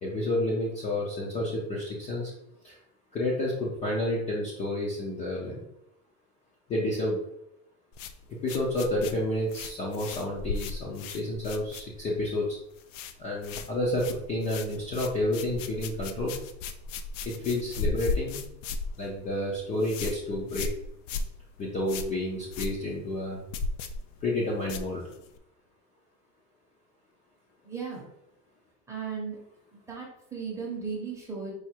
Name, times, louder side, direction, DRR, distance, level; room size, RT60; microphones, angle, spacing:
voice 1, 0.0-2.3 2.6-2.8 3.1-5.6 6.7-7.2 8.4-12.6 13.2-16.3 17.2-18.4 19.0-20.7 21.6-23.4 24.2-25.0, left 1 dB, 20° left, -5 dB, 0.5 m, -30 dB
sound 1, 7.9-12.3 12.5-13.2 13.4-25.4, left 4 dB, 70° left, 0.6 m, -36 dB
voice 2, 27.6-28.0 28.9-29.4 29.7-31.5, right 5 dB, 5° right, -3 dB, 0.8 m, -36 dB
4.8 x 2.5 x 4.4 m, 0.81 s
supercardioid pair, 170°, 38 cm